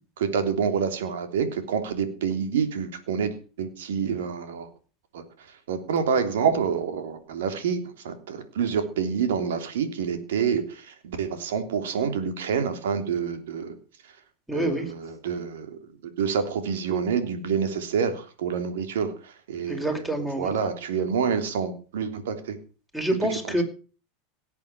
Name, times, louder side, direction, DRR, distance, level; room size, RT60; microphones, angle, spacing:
voice 1, 0.2-4.7 5.1-5.2 5.7-13.8 14.5-15.8 16.2-20.0 20.4-22.6 23.5-23.6, right 6 dB, 75° right, 8 dB, 3.2 m, -27 dB
voice 2, 14.5-14.9 19.7-20.5 22.9-23.6, right 1 dB, 5° right, 5 dB, 5.3 m, -26 dB
18.0 x 8.4 x 7.2 m, 0.38 s
hypercardioid pair, 95°, 0 cm